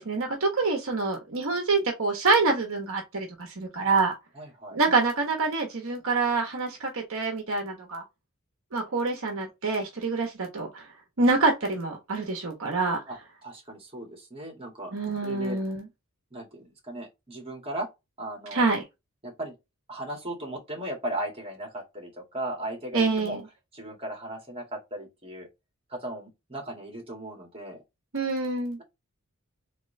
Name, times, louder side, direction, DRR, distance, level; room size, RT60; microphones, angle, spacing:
voice 1, 0.0-4.1 4.7-8.0 8.7-10.9 11.2-13.0 14.9-15.9 18.5-18.8 22.9-23.4 28.1-28.8, right 3 dB, 65° right, 1.1 m, -26 dB
voice 2, 4.3-4.8 13.1-14.9 15.2-15.6 16.3-17.9 18.2-18.6 19.2-19.6 19.9-23.4 23.7-25.5 25.9-27.8, right 1 dB, 25° right, 1.9 m, -37 dB
3.8 x 3.0 x 3.2 m
head